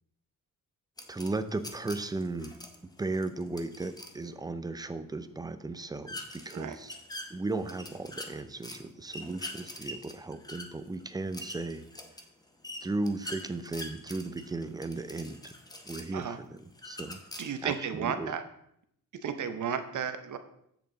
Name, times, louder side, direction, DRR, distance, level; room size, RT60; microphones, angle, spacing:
sound 1, 1.0-4.2 6.1-8.8 9.1-16.2 16.7-17.7, left 1 dB, 10° left, 0.9 m, -44 dB
voice 1, 1.1-2.6 3.0-7.0 7.3-11.9 12.8-15.5 15.8-17.2 17.6-18.3, right 2 dB, 10° right, 11 dB, 0.4 m, -36 dB
voice 2, 17.4-18.4 19.2-20.4, right 7 dB, 60° right, 9 dB, 0.9 m, -33 dB
8.0 x 6.6 x 3.9 m, 0.74 s
wide cardioid pair, 135°, 34 cm